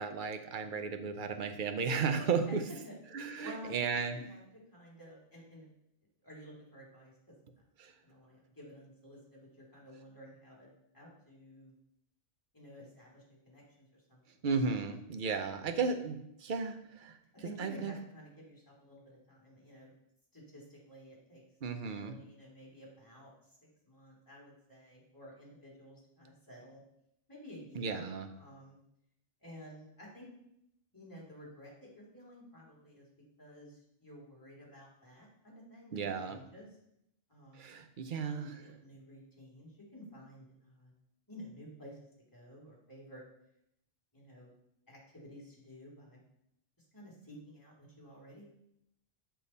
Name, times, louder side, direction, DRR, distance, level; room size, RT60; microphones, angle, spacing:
voice 1, 0.0-2.6 3.1-4.2 7.8-7.9 14.4-17.9 21.6-22.2 27.7-28.3 35.9-36.4 37.6-38.6, right 5 dB, 55° right, 7 dB, 0.8 m, -34 dB
voice 2, 3.4-4.4 4.7-5.7 6.2-7.1 8.0-10.7 10.9-11.7 12.5-14.4 17.3-19.9 20.3-21.4 21.9-23.3 23.9-26.8 27.3-28.0 28.3-28.8 29.4-30.3 30.9-33.1 33.4-36.7 37.3-37.7 38.4-40.9 41.3-42.0 42.3-43.2 44.1-44.5 44.9-46.2 46.9-48.4, equal, 20° left, -4 dB, 2.3 m, -52 dB
7.0 x 5.8 x 4.1 m, 0.78 s
omnidirectional pair, 1.1 m